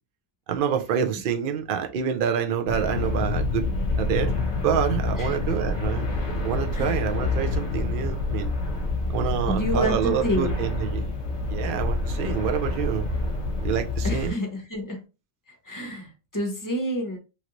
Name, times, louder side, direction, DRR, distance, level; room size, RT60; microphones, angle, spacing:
voice 1, 0.5-3.7 4.0-6.1 6.4-8.5 9.1-11.1 11.5-13.0 13.6-14.4, right 8 dB, 65° right, 0.5 m, -27 dB
sound 1, 2.7-14.3, left 2 dB, 60° left, 0.9 m, -27 dB
voice 2, 9.5-10.6 14.0-15.0 15.6-17.2, equal, 20° left, 0.6 m, -28 dB
3.1 x 2.5 x 2.9 m
omnidirectional pair, 1.5 m